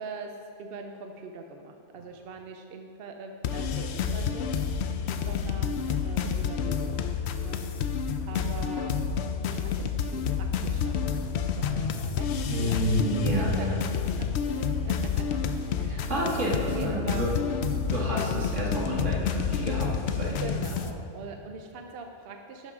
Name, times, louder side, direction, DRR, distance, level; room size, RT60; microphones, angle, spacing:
voice 1, 0.0-7.1 7.4-7.6 7.9-9.0 9.5-11.0 11.3-12.3 12.6-12.8 13.1-13.7 14.2-15.2 15.7-17.3 20.4-22.7, right 4 dB, 55° right, 4 dB, 0.8 m, -42 dB
sound 1, 3.4-20.9, left 6 dB, 65° left, 0.8 m, -29 dB
voice 2, 12.5-13.8 15.8-17.3 17.9-20.4, right 1 dB, 75° right, -4 dB, 2.3 m, -29 dB
11.5 x 6.2 x 4.9 m, 2.5 s
omnidirectional pair, 1.3 m